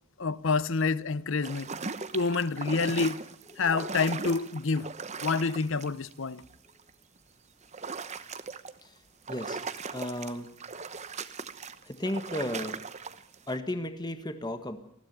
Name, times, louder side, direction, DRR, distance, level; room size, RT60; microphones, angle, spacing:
voice 1, 0.2-1.7 2.1-3.2 3.6-4.9 5.2-6.4, left 4 dB, 60° left, 0.8 m, -28 dB
sound 1, 1.4-6.1 6.5-6.9 7.6-8.8 9.3-13.6, right 5 dB, 30° right, 1.0 m, -39 dB
voice 2, 9.3-9.6 9.9-10.5 11.8-12.8 13.5-14.8, left 1 dB, 20° left, 1.5 m, -34 dB
20.0 x 15.5 x 9.4 m
head